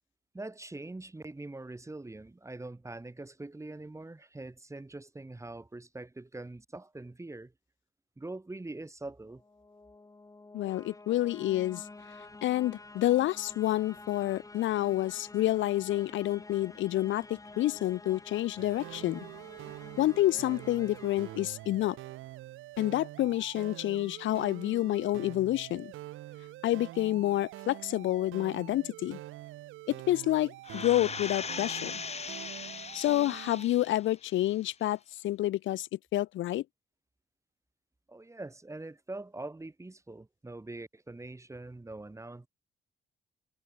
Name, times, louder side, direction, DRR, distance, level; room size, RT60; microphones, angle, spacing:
voice 1, 0.3-7.5 8.2-9.4 38.1-42.5, right 2 dB, 15° right, 2.5 m, -43 dB
sound 1, 9.2-22.3, left 3 dB, 15° left, 1.5 m, -50 dB
voice 2, 10.5-11.8 12.4-19.3 20.0-22.0 22.8-25.9 26.6-29.2 29.9-32.0 32.9-35.0 35.2-36.6, left 14 dB, 75° left, 0.6 m, -29 dB
sound 2, 18.6-33.7, right 16 dB, 85° right, 1.1 m, -45 dB
sound 3, 30.6-34.0 34.5-34.6, left 6 dB, 30° left, 1.1 m, -39 dB
cardioid pair, 90°, 20 cm